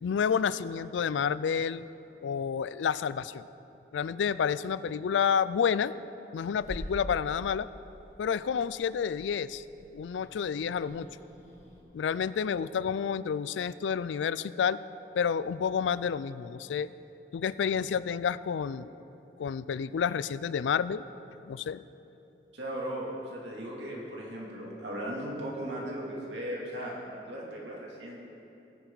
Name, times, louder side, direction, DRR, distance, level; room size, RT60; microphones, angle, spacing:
voice 1, 0.0-1.9 2.2-3.5 3.9-5.9 6.3-7.7 8.2-9.6 9.9-11.1 11.9-14.8 15.1-16.9 17.3-18.9 19.4-21.0 21.4-21.8, left 7 dB, 90° left, 17 dB, 0.3 m, -29 dB
Growling / Hiss, 6.6-11.8, equal, 40° left, 2.0 m, -46 dB
voice 2, 12.5-12.9 22.5-28.2, right 1 dB, 80° right, -4 dB, 2.8 m, -37 dB
17.5 x 10.0 x 4.0 m, 2.9 s
head